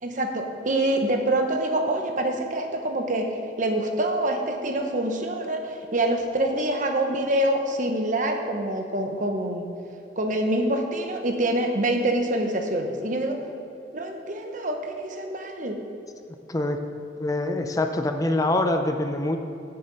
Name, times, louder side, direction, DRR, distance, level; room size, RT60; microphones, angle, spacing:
voice 1, 0.0-3.3 3.6-9.7 10.2-13.4 13.9-15.8, right 1 dB, 50° right, 3 dB, 1.1 m, -26 dB
voice 2, 16.5-16.8 17.2-19.4, left 2 dB, 20° left, 5 dB, 0.5 m, -24 dB
16.5 x 6.7 x 4.1 m, 2.6 s
head